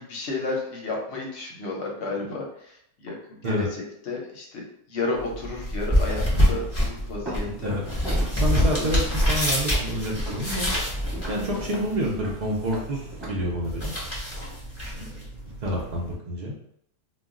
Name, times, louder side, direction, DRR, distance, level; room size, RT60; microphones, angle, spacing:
voice 1, 0.0-2.5 3.0-3.7 4.1-7.7 8.8-8.9 11.5-11.7 15.0-15.1, left 3 dB, 60° left, -1 dB, 0.8 m, -32 dB
sound 1, 5.1-16.1, equal, 15° left, 0.7 m, -27 dB
Walk footsteps, 7.3-13.3, right 1 dB, 20° right, 0.9 m, -40 dB
voice 2, 7.4-7.8 8.3-10.7 11.3-13.9 14.9-15.0 15.6-16.6, equal, 70° right, -3 dB, 0.4 m, -28 dB
2.3 x 2.2 x 3.6 m, 0.72 s
omnidirectional pair, 1.6 m